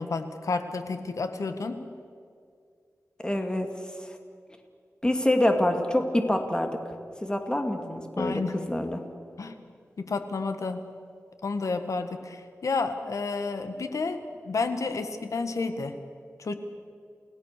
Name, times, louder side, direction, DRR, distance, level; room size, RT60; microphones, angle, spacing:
voice 1, 0.0-1.7 8.2-8.5 9.4-9.6 10.0-10.8 11.4-14.2 14.4-16.0 16.4-16.5, left 4 dB, 75° left, 8 dB, 1.7 m, -30 dB
voice 2, 3.2-3.7 4.0-4.1 5.0-6.7 7.2-9.0, left 1 dB, 15° left, 5 dB, 2.3 m, -26 dB
29.5 x 17.5 x 6.8 m, 2.2 s
wide cardioid pair, 90°, 5 cm